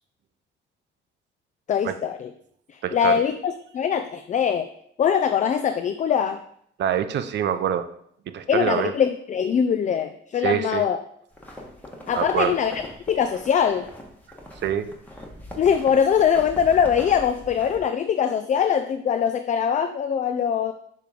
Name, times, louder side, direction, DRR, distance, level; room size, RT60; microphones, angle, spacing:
voice 1, 1.7-2.3 2.7-4.7 5.0-6.4 8.5-11.0 12.1-12.8 13.1-13.9 15.6-20.7, left 7 dB, 40° left, 9 dB, 0.4 m, -22 dB
voice 2, 2.8-3.2 6.8-7.9 8.3-8.9 10.4-10.8 12.1-12.6 14.6-14.9, right 9 dB, 65° right, 11 dB, 0.6 m, -25 dB
sound 1, 11.3-17.8, equal, 10° left, 1.5 m, -41 dB
6.7 x 3.1 x 5.2 m, 0.68 s
cardioid pair, 90°, 20 cm